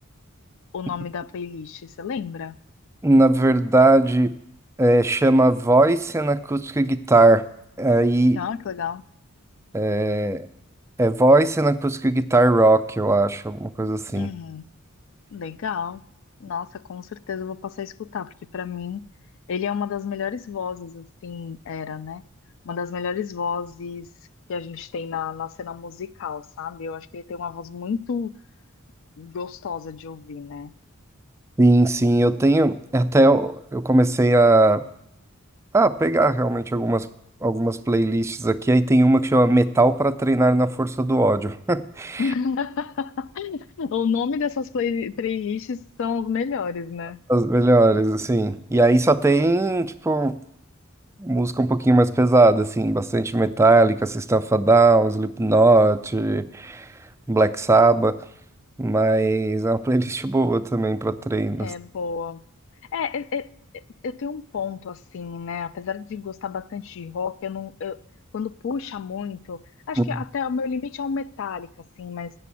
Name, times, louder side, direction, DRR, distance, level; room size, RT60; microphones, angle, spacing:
voice 1, 0.7-2.6 8.3-9.0 14.2-14.7 15.3-16.0 16.4-19.0 19.5-22.2 22.6-24.1 24.5-28.3 29.2-30.7 42.2-47.2 61.6-62.4 62.9-68.0 68.3-69.6 69.9-72.3, left 6 dB, 65° left, 0.4 m, -30 dB
voice 2, 3.0-4.3 4.8-7.4 7.8-8.4 9.7-10.5 11.0-14.3 31.6-34.8 35.7-37.1 37.4-42.2 47.3-50.4 51.2-56.9 57.3-58.2 58.8-61.7 70.0-70.1, right 2 dB, 15° right, 0.3 m, -19 dB
8.4 x 6.8 x 8.3 m
head